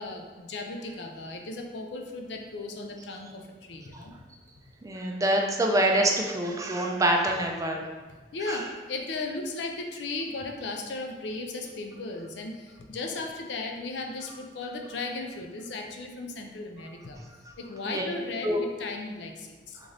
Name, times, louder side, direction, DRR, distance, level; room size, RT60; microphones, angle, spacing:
voice 1, 0.0-4.1 8.3-17.2 17.6-19.8, left 3 dB, 70° left, 3 dB, 0.4 m, -36 dB
voice 2, 4.8-7.8 8.5-8.6 17.9-18.1 18.4-18.6, right 1 dB, 20° right, 1 dB, 0.4 m, -25 dB
3.8 x 2.5 x 3.2 m, 1.3 s
head